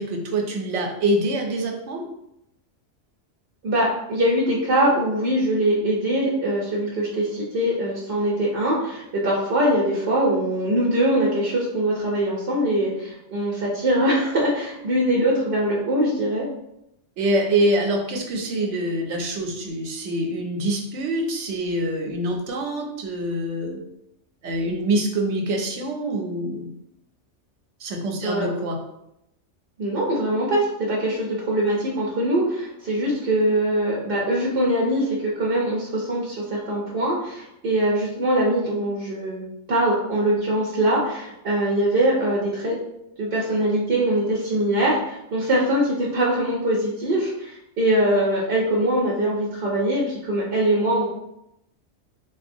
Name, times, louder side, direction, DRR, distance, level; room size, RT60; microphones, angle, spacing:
voice 1, 0.0-2.0 17.2-23.8 24.4-26.7 27.8-28.8, right 1 dB, 85° right, 2 dB, 0.9 m, -25 dB
voice 2, 3.6-16.5 28.2-28.5 29.8-42.8 43.2-51.1, right 1 dB, 60° right, -4 dB, 0.8 m, -22 dB
3.5 x 2.1 x 2.5 m, 0.82 s
omnidirectional pair, 1.2 m